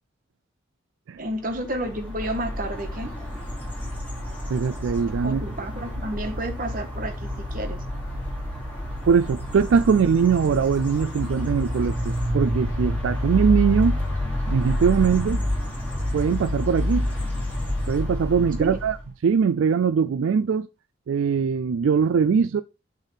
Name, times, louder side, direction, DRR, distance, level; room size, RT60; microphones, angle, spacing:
voice 1, 1.2-3.1 5.2-7.8 18.6-18.8, right 1 dB, 45° right, 1.4 m, -31 dB
sound 1, 1.5-19.1, left 1 dB, 10° left, 2.6 m, -28 dB
voice 2, 4.5-5.4 9.1-14.0 14.5-15.5 16.1-17.1 17.9-19.0 19.2-20.7 21.1-22.6, right 6 dB, 80° right, 0.4 m, -21 dB
7.2 x 3.6 x 5.6 m
head